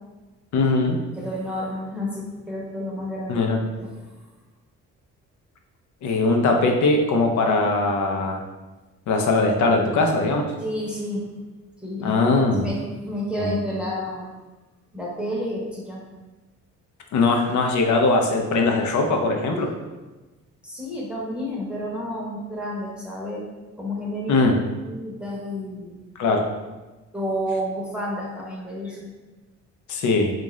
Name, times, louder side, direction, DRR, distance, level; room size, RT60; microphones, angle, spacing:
voice 1, 0.5-1.0 3.3-3.6 6.0-8.4 9.1-10.4 12.0-12.7 13.4-13.6 17.1-19.7 24.3-24.6 26.2-26.5 29.9-30.3, left 3 dB, 70° left, 3 dB, 0.6 m, -20 dB
voice 2, 1.1-3.4 3.8-3.9 10.6-11.3 11.8-12.2 12.6-14.3 14.9-16.0 20.6-23.4 23.8-24.4 24.8-26.0 27.1-29.1, equal, 5° right, -5 dB, 0.8 m, -30 dB
3.7 x 2.5 x 3.1 m, 1.2 s
cardioid pair, 90°, 30 cm